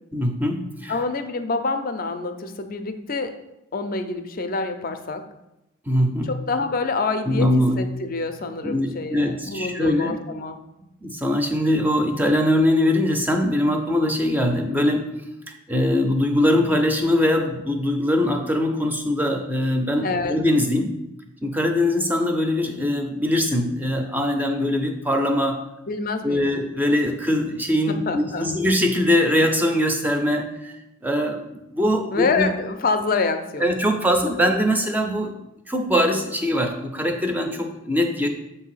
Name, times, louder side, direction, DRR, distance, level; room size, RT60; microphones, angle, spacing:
voice 1, 0.1-1.0 5.9-6.4 7.3-7.8 8.6-10.2 11.0-15.1 15.5-21.0 21.4-25.7 26.2-30.7 31.0-32.5 33.6-35.4 35.7-38.3, left 1 dB, 10° right, 4 dB, 0.5 m, -22 dB
voice 2, 0.9-3.3 3.7-5.2 6.2-7.5 7.8-10.6 20.0-20.4 25.9-26.5 27.9-28.5 32.1-33.7, left 4 dB, 40° left, 8 dB, 0.5 m, -26 dB
7.5 x 2.7 x 5.6 m, 0.90 s
head